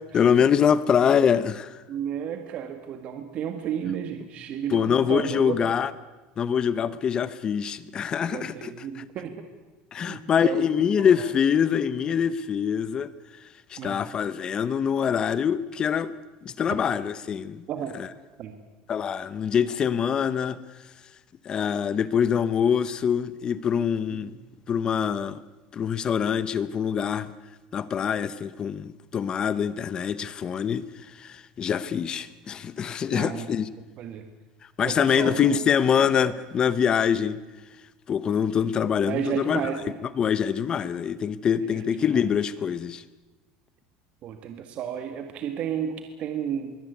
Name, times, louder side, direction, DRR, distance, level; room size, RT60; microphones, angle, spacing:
voice 1, 0.1-1.8 4.7-5.9 6.4-9.0 9.9-13.1 13.7-16.1 16.4-17.6 18.0-18.1 18.9-20.6 21.4-24.3 24.7-25.4 25.7-27.3 27.7-33.7 34.8-37.4 38.1-39.6 40.2-43.0, left 7 dB, 25° left, 0.8 m, -24 dB
voice 2, 1.9-5.6 8.3-9.5 10.0-10.7 11.0-11.3 13.8-14.0 16.7-16.8 17.7-17.9 18.4-18.6 24.2-24.3 33.1-33.5 34.0-34.2 34.8-35.6 39.1-39.9 41.7-41.9 44.2-46.7, right 8 dB, 40° right, 1.7 m, -32 dB
22.5 x 17.0 x 9.6 m
cardioid pair, 155°, 3 cm